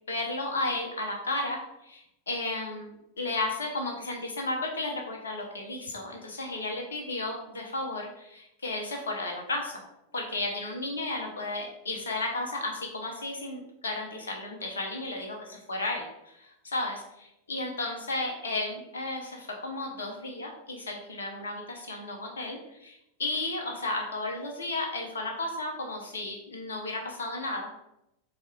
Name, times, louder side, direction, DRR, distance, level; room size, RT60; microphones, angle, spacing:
voice 1, 0.1-9.8 10.1-27.7, left 2 dB, 70° left, 1 dB, 0.8 m, -34 dB
4.2 x 3.4 x 3.6 m, 0.84 s
figure-of-eight pair, 90°, 0 cm